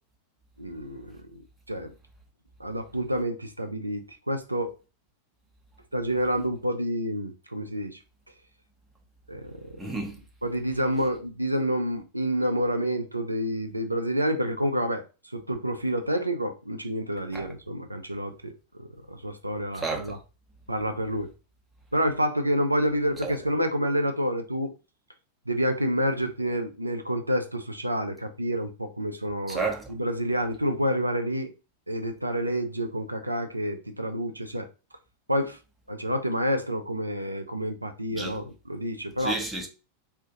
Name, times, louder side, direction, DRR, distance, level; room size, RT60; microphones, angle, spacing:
voice 1, 0.6-1.4 1.7-1.9 2.6-4.7 5.9-8.0 9.3-10.0 10.4-15.0 15.3-18.5 18.8-20.2 20.7-21.3 21.9-24.7 25.5-31.5 31.9-34.7 35.3-35.6 35.9-39.4, equal, 85° right, 0.4 m, -28 dB
voice 2, 9.8-10.2 17.3-17.5 19.7-20.1 23.2-23.3 29.5-29.9 38.1-38.4 39.2-39.7, right 3 dB, 10° right, 0.8 m, -31 dB
2.5 x 2.4 x 3.7 m
figure-of-eight pair, 90°, 0 cm